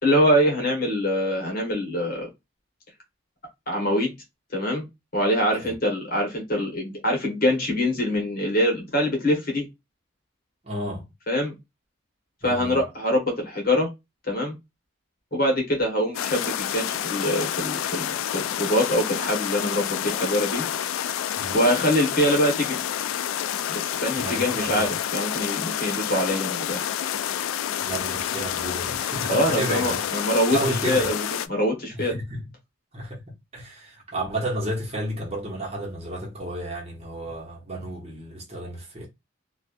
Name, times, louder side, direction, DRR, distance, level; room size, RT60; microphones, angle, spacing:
voice 1, 0.0-2.3 3.7-4.1 4.5-4.8 5.1-9.6 11.3-11.5 12.4-13.9 14.3-14.5 15.3-20.6 21.5-22.8 23.7-26.9 29.3-30.6 30.9-32.2, equal, 45° left, 1.4 m, -24 dB
voice 2, 10.6-11.1 12.4-12.8 21.4-21.6 24.2-24.4 24.7-24.9 27.8-30.1 30.5-31.1 31.9-32.5 32.9-39.1, right 1 dB, 30° right, 1.0 m, -32 dB
sound 1, 16.1-31.5, left 10 dB, 80° left, 0.3 m, -29 dB
3.3 x 2.4 x 2.5 m
head